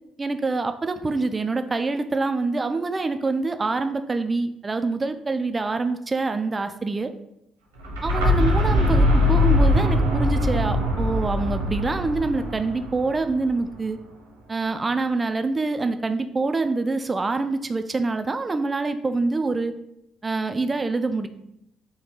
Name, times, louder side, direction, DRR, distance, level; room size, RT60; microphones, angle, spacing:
voice 1, 0.2-7.1 8.0-14.0 14.5-19.7 20.2-21.3, right 3 dB, 25° right, 9 dB, 0.4 m, -25 dB
sound 1, 7.8-13.6, left 1 dB, 75° right, 1.0 m, -21 dB
4.0 x 2.9 x 4.6 m, 0.81 s
figure-of-eight pair, 45°, 0 cm